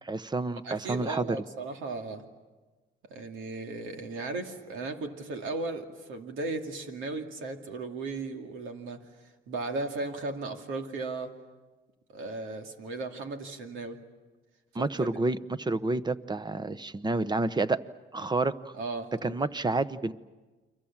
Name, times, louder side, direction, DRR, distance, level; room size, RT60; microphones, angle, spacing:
voice 1, 0.0-1.3 14.7-17.8 18.1-18.6 19.2-20.1, right 3 dB, 20° right, 15 dB, 0.9 m, -29 dB
voice 2, 0.6-2.2 3.1-9.1 9.5-11.3 12.1-14.0 14.7-15.1 18.7-19.5, right 3 dB, 90° right, 4 dB, 2.5 m, -36 dB
30.0 x 24.0 x 7.4 m, 1.3 s
cardioid pair, 90°, 20 cm